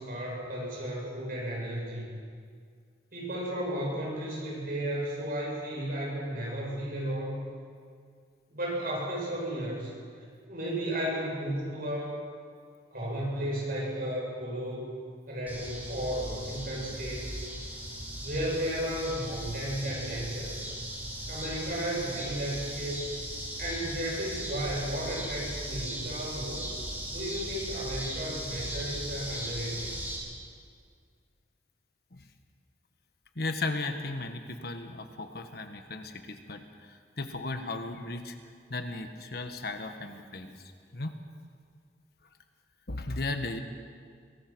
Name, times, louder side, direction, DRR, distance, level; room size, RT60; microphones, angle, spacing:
voice 1, 0.0-2.2 3.1-7.4 8.5-9.9 10.5-12.2 12.9-14.9 15.3-17.3 18.2-20.6 21.3-23.1 23.6-26.7 27.1-30.0, right 1 dB, 55° right, -3 dB, 7.9 m, -34 dB
sound 1, 15.5-30.2, right 1 dB, 10° right, 5.0 m, -38 dB
voice 2, 33.3-38.4 38.7-40.6 40.9-41.1 42.9-43.6, left 2 dB, 60° left, 6 dB, 1.4 m, -36 dB
22.5 x 19.0 x 6.2 m, 2.1 s
head